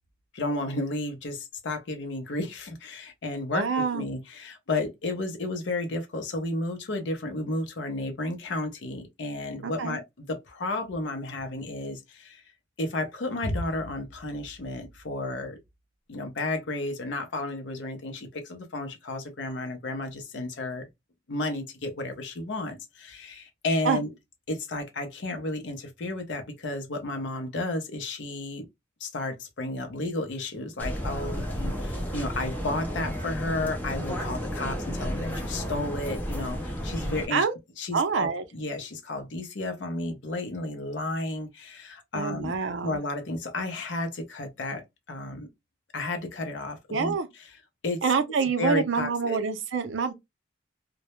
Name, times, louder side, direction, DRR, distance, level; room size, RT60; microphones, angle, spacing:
voice 1, 0.3-12.4 12.8-15.6 16.1-20.8 21.3-24.1 24.5-28.7 29.0-37.4 37.8-42.5 42.8-44.8 45.1-45.5 45.9-47.1 47.8-48.0 48.6-49.4, left 2 dB, 70° left, 0.6 m, -32 dB
voice 2, 3.5-4.1 9.6-10.0 23.8-24.0 37.3-37.5 37.9-38.4 42.1-43.0 46.9-47.3 48.0-50.1, right 5 dB, 80° right, 0.5 m, -26 dB
sound 1, 30.8-37.3, equal, 10° left, 0.5 m, -32 dB
2.1 x 2.0 x 2.9 m
head